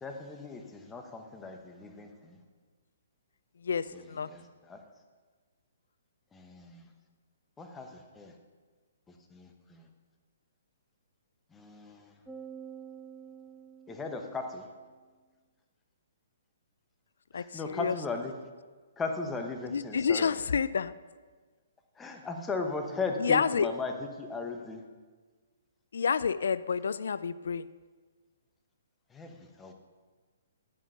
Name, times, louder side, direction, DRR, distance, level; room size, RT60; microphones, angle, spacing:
voice 1, 0.0-2.4 3.9-4.8 6.3-6.9 7.6-8.3 9.3-9.9 11.5-12.1 13.9-14.7 17.3-18.3 19.0-20.3 22.0-24.8 29.1-29.7, left 3 dB, 10° left, 4 dB, 1.1 m, -37 dB
voice 2, 3.6-4.3 17.3-17.9 19.6-20.9 23.2-23.7 25.9-27.7, left 6 dB, 70° left, 16 dB, 0.3 m, -29 dB
sound 1, 12.3-14.8, right 7 dB, 5° right, 0.6 m, -48 dB
10.0 x 7.3 x 5.6 m, 1.4 s
figure-of-eight pair, 130°, 0 cm